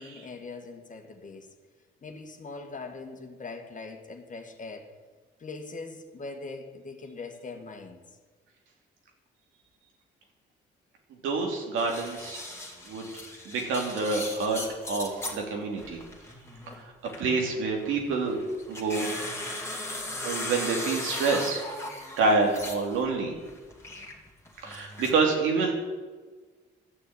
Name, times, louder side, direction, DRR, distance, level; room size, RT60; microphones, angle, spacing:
voice 1, 0.0-1.5 2.0-4.9 5.4-8.0, left 3 dB, 40° left, 1.8 m, -41 dB
voice 2, 11.2-12.4 12.8-13.1 13.4-16.0 16.7-16.9 17.2-18.4 18.7-19.1 20.2-21.6 22.2-23.3 24.6-25.7, right 4 dB, 85° right, 2.8 m, -27 dB
sound 1, 11.8-15.4 15.8-17.3 17.8-23.0 23.3-25.1, left 1 dB, 15° left, 2.7 m, -38 dB
12.5 x 6.8 x 8.6 m
cardioid pair, 90°, 20 cm